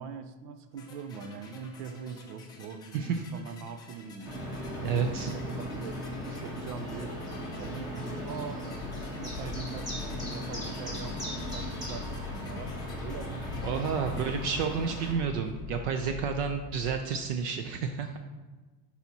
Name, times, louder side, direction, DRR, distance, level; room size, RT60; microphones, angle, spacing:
voice 1, 0.0-4.5 4.8-7.2 7.6-8.7 9.2-14.2, right 6 dB, 75° right, 9 dB, 0.8 m, -42 dB
sound 1, 0.8-15.7, left 3 dB, 10° left, 0.4 m, -53 dB
sound 2, 4.2-15.1, equal, 10° right, 1.1 m, -37 dB
voice 2, 4.8-5.3 13.6-18.2, right 6 dB, 50° right, 6 dB, 0.5 m, -30 dB
sound 3, 8.7-17.0, left 7 dB, 25° left, 0.9 m, -43 dB
10.5 x 4.1 x 2.8 m, 1.3 s
supercardioid pair, 155°, 47 cm